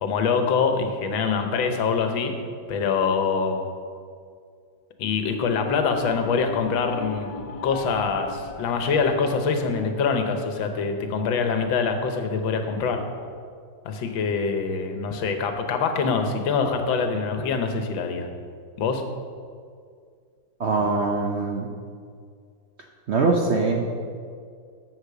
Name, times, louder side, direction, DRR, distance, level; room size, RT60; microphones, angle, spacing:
voice 1, 0.0-2.3 2.7-3.7 5.0-7.3 7.6-13.0 13.8-18.3 18.8-19.0, left 5 dB, 85° left, 6 dB, 1.7 m, -24 dB
sound 1, 5.2-10.2, left 5 dB, 70° left, 1.4 m, -38 dB
voice 2, 20.6-21.7 23.1-23.9, right 3 dB, 75° right, 2 dB, 0.6 m, -23 dB
8.3 x 7.1 x 6.8 m, 2.2 s
omnidirectional pair, 2.1 m